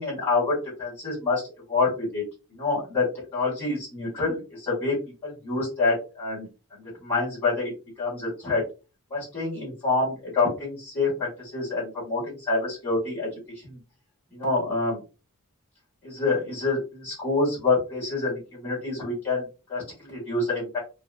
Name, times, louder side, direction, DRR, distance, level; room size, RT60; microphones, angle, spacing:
voice 1, 0.0-1.4 1.7-2.2 2.5-3.1 3.3-5.0 5.2-6.5 7.0-7.7 8.0-8.6 9.1-13.3 13.5-13.8 14.3-15.0 16.0-20.8, left 3 dB, 25° left, -7 dB, 2.0 m, -27 dB
4.6 x 2.1 x 2.4 m, 0.30 s
head